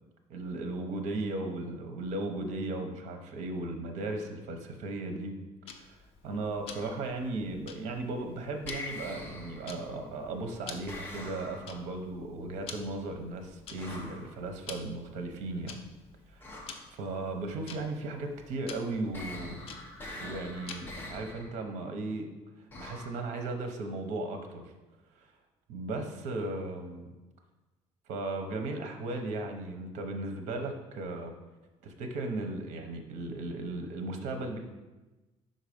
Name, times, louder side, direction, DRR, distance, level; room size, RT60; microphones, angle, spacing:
voice 1, 0.3-5.3 5.8-6.0 6.2-15.8 16.3-19.6 20.2-22.3 22.8-24.6 25.2-25.3 25.7-27.0 28.1-31.3 31.8-34.6, right 2 dB, 80° right, 5 dB, 0.9 m, -36 dB
Tick-tock, 5.7-21.1, left 5 dB, 55° left, 0.6 m, -50 dB
sound 1, 6.7-7.1 8.6-9.9 10.9-11.9 13.8-14.3 16.4-16.9 19.1-21.6 22.7-23.2, left 2 dB, 15° left, 0.9 m, -43 dB
5.7 x 4.0 x 5.0 m, 1.1 s
cardioid pair, 175°, 12 cm